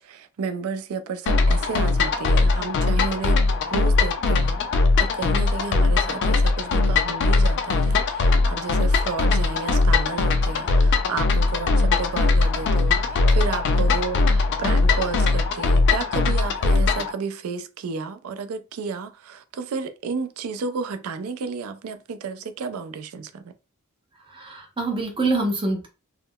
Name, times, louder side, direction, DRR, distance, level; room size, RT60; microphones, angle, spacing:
voice 1, 0.0-23.4, right 5 dB, 65° right, 0.4 m, -32 dB
sound 1, 1.3-17.1, left 3 dB, 50° left, 0.4 m, -20 dB
voice 2, 24.3-25.9, right 2 dB, 25° right, 0.6 m, -25 dB
3.5 x 2.0 x 2.2 m
head